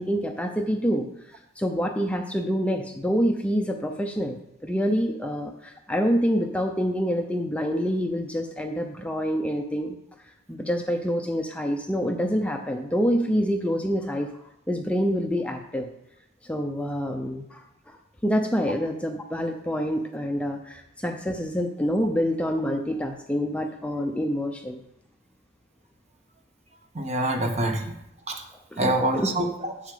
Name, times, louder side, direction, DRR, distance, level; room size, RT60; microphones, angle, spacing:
voice 1, 0.0-10.0 10.5-15.9 16.4-18.0 18.2-24.8 28.7-28.9 29.1-29.3, equal, 5° left, 3 dB, 0.6 m, -27 dB
voice 2, 26.9-27.9 28.3-28.4 28.8-29.7, right 1 dB, 35° right, 4 dB, 1.2 m, -25 dB
10.5 x 7.2 x 5.0 m, 0.82 s
head